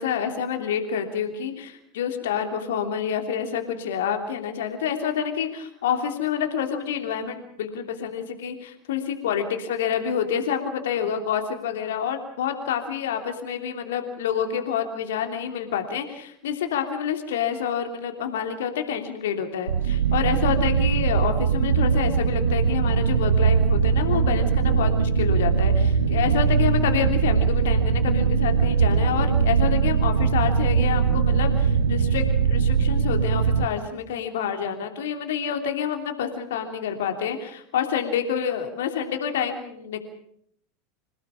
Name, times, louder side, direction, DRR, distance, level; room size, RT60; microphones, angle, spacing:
voice 1, 0.0-40.0, left 8 dB, 65° left, 6 dB, 3.1 m, -28 dB
sound 1, 19.7-33.7, right 6 dB, 75° right, 1.3 m, -21 dB
27.0 x 18.0 x 7.2 m, 0.68 s
figure-of-eight pair, 80°, 0 cm